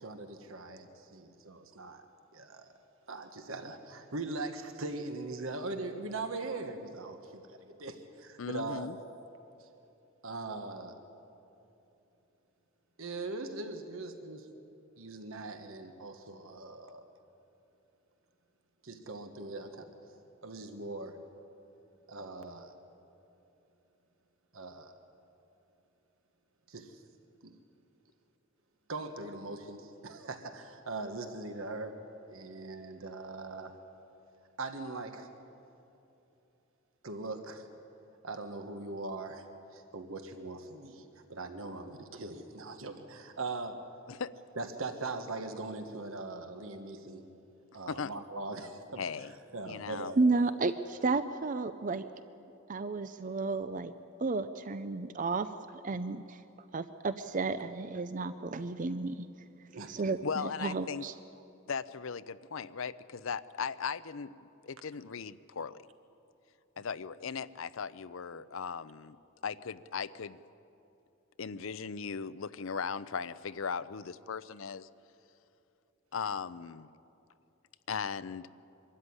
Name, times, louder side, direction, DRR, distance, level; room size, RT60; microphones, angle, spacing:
voice 1, 0.0-2.0 2.3-2.7 3.1-8.9 9.6-9.7 10.2-11.0 13.0-14.5 15.0-17.0 18.8-19.9 20.4-21.2 22.1-22.7 24.5-24.9 26.7-27.0 27.4-27.5 28.9-32.0 32.3-33.7 34.6-35.3 37.0-37.7 38.2-39.5 39.7-43.8 44.6-47.2 47.7-49.3 49.5-50.2 59.7-60.0, right 3 dB, 75° right, 6 dB, 1.4 m, -41 dB
voice 2, 8.4-9.0 44.1-44.3 47.9-48.1 49.0-49.3 49.7-50.1 60.2-61.1 61.7-64.4 64.6-65.8 66.8-69.2 69.4-70.4 71.4-74.9 76.1-76.9 77.9-78.5, left 6 dB, 70° left, 16 dB, 0.6 m, -38 dB
voice 3, 50.2-52.1 52.7-53.9 54.2-55.5 55.8-56.4 56.7-59.3 59.9-61.1, right 3 dB, 40° right, 12 dB, 0.5 m, -32 dB
24.0 x 13.0 x 9.7 m, 2.9 s
head